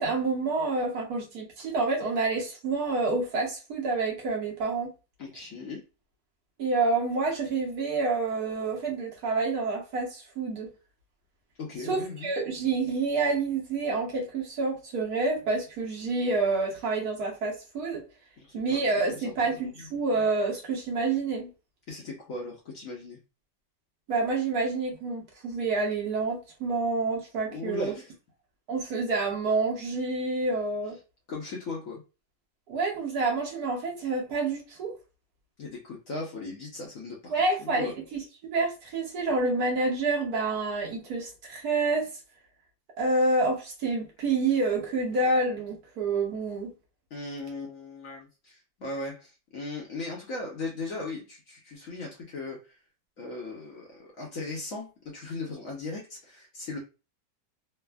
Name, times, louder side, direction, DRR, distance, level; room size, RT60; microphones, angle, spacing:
voice 1, 0.0-4.9 6.6-10.7 11.8-18.0 18.5-21.5 24.1-27.9 28.7-31.0 32.7-34.9 37.3-42.1 43.0-46.7, right 3 dB, 65° right, 1.1 m, -28 dB
voice 2, 5.2-5.8 11.6-12.3 18.4-18.8 19.1-19.6 21.9-23.2 27.5-28.1 31.3-32.0 35.6-37.3 37.6-37.9 47.1-52.8 53.2-56.8, left 3 dB, 60° left, 1.0 m, -38 dB
3.2 x 2.0 x 2.2 m
omnidirectional pair, 2.0 m